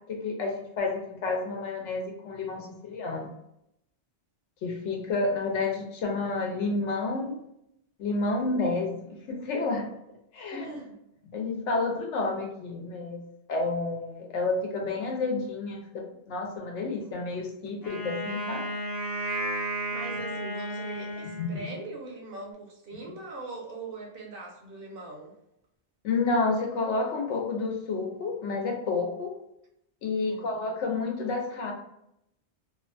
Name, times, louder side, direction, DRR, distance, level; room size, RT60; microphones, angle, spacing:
voice 1, 0.1-3.3 4.6-7.4 8.0-9.9 10.3-10.7 11.3-13.2 13.5-18.6 21.4-21.5 26.0-29.3 30.0-31.7, left 3 dB, 85° left, 1 dB, 0.9 m, -30 dB
voice 2, 10.5-11.0 19.9-25.3 30.2-30.6, right 2 dB, 60° right, 0 dB, 0.7 m, -41 dB
Wind instrument woodwind instrument, 17.8-22.0, right 1 dB, 30° left, 0.4 m, -33 dB
2.6 x 2.2 x 2.5 m, 0.80 s
omnidirectional pair, 1.2 m